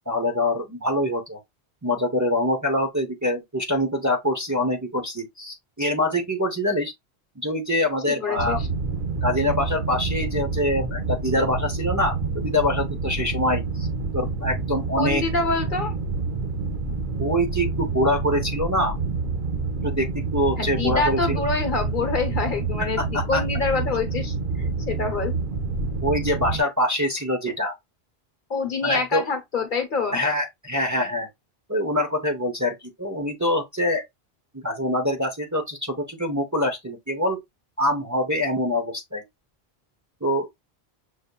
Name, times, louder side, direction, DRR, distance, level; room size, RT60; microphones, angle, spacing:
voice 1, 0.1-1.4 1.8-6.9 7.4-8.6 9.2-13.9 14.1-15.2 17.2-19.0 19.8-21.4 23.0-23.4 26.0-27.8 28.8-29.2 30.1-31.3 31.7-34.0 34.5-37.4 37.8-39.2 40.2-40.5, left 1 dB, 20° right, 0.8 m, -24 dB
voice 2, 8.1-8.7 15.0-16.0 20.6-25.3 28.5-30.2, left 4 dB, 55° left, 1.1 m, -26 dB
sound 1, 8.4-26.6, right 3 dB, 55° right, 1.4 m, -28 dB
6.5 x 2.7 x 2.2 m
omnidirectional pair, 1.1 m